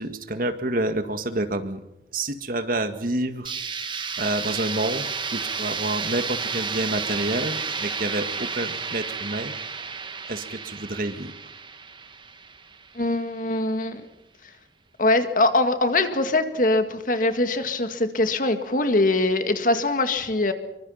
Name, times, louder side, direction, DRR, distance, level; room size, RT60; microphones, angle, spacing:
voice 1, 0.0-1.8 2.1-3.5 4.2-9.5 10.3-11.3, right 1 dB, 50° right, 8 dB, 2.0 m, -28 dB
sound 1, 3.4-13.2, right 5 dB, 25° right, 1.6 m, -32 dB
voice 2, 13.0-14.0 15.0-20.5, left 2 dB, 50° left, 8 dB, 1.9 m, -22 dB
25.5 x 24.0 x 5.8 m, 0.87 s
head